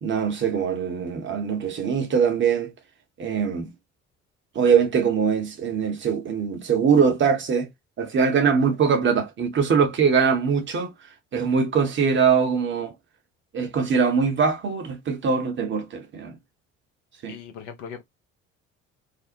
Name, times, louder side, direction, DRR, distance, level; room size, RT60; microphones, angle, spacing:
voice 1, 0.0-2.7 3.2-3.7 4.5-7.7 8.0-10.9 11.3-12.9 13.5-16.4 17.2-17.3, right 6 dB, 30° right, 0.8 m, -22 dB
voice 2, 17.3-18.0, left 7 dB, 65° left, 0.8 m, -38 dB
2.5 x 2.0 x 2.7 m
figure-of-eight pair, 55°, 38 cm